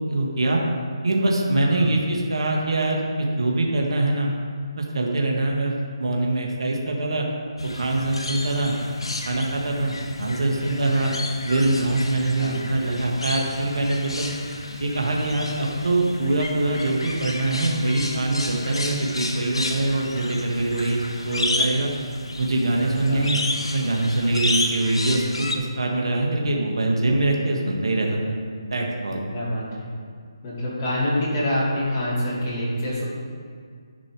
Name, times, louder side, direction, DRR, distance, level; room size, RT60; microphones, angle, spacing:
voice 1, 0.1-0.6 1.0-4.3 4.8-7.3 7.7-8.7 9.2-11.1 11.4-14.3 14.8-21.9 22.4-23.4 23.7-28.3 28.7-29.2, right 2 dB, 70° right, 0 dB, 1.6 m, -23 dB
voice 2, 1.5-1.9 12.4-12.6 22.8-23.4 29.3-29.9 30.4-33.1, left 1 dB, 25° left, -7 dB, 2.4 m, -26 dB
sound 1, 7.6-25.6, left 2 dB, 90° left, 1.2 m, -31 dB
10.5 x 5.4 x 4.6 m, 2.1 s
hypercardioid pair, 165°, 3 cm